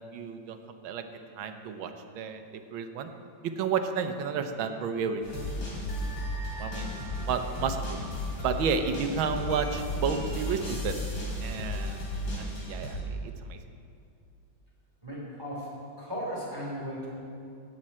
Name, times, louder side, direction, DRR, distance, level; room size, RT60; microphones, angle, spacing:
voice 1, 0.1-0.6 0.8-1.1 1.4-3.1 3.6-5.2 6.6-7.0 7.3-7.8 8.4-11.0 11.4-12.0 12.4-13.6, right 6 dB, 90° right, 7 dB, 1.6 m, -31 dB
sound 1, 5.2-13.0, left 1 dB, 85° left, 3.8 m, -34 dB
voice 2, 15.0-15.7 16.0-17.1, equal, 10° right, -6 dB, 3.1 m, -36 dB
16.5 x 8.6 x 4.3 m, 2.4 s
omnidirectional pair, 2.1 m